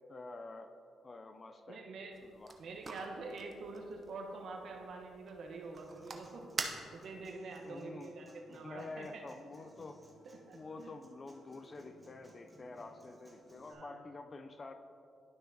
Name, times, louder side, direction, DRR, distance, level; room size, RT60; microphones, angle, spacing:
voice 1, 0.1-0.7 1.0-1.9 2.2-2.5 7.6-8.1 8.5-10.0 10.5-14.7, left 3 dB, 35° left, 8 dB, 0.5 m, -48 dB
voice 2, 1.7-2.1 2.6-9.2 10.2-11.0 13.7-14.0, right 3 dB, 65° right, 2 dB, 1.1 m, -46 dB
sound 1, 2.1-7.3, right 3 dB, 35° right, 0.8 m, -46 dB
Human voice / Acoustic guitar, 5.7-13.7, right 1 dB, 5° right, 1.4 m, -61 dB
12.0 x 5.7 x 2.8 m, 2.5 s
cardioid pair, 90°, 0 cm